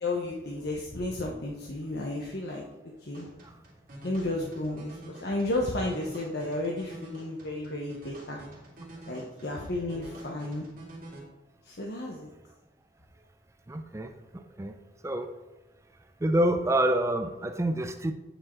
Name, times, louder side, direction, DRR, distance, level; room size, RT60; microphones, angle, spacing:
voice 1, 0.0-2.6 3.0-3.3 4.0-8.4 9.1-10.7 11.6-12.3, left 2 dB, 60° left, -1 dB, 0.9 m, -33 dB
sound 1, 3.1-11.2, right 1 dB, 45° right, 2.4 m, -48 dB
voice 2, 13.7-14.8 15.0-15.3 16.2-18.1, right 1 dB, 15° right, 7 dB, 0.4 m, -27 dB
8.9 x 4.7 x 4.3 m, 1.1 s
head